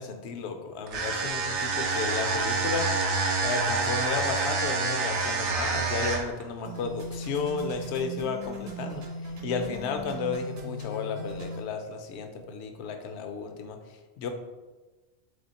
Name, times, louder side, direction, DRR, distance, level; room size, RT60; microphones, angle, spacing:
voice 1, 0.0-2.9 3.4-14.3, left 5 dB, 75° left, 5 dB, 0.8 m, -33 dB
sound 1, 0.9-6.4, right 4 dB, 85° right, 1.0 m, -27 dB
sound 2, 6.6-11.6, right 1 dB, 65° right, 1.1 m, -38 dB
3.5 x 3.4 x 4.0 m, 1.2 s
omnidirectional pair, 1.2 m